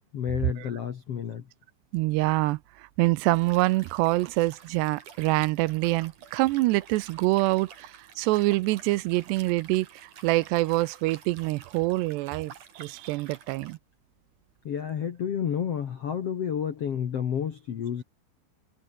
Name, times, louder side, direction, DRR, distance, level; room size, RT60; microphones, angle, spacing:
voice 1, 0.0-1.4 14.6-18.0, left 8 dB, 75° left, 1.4 m, -30 dB
voice 2, 1.9-13.8, right 20 dB, 80° right, 2.6 m, -26 dB
Liquid, 3.2-13.8, right 8 dB, 45° right, 3.8 m, -50 dB
omnidirectional pair, 5.3 m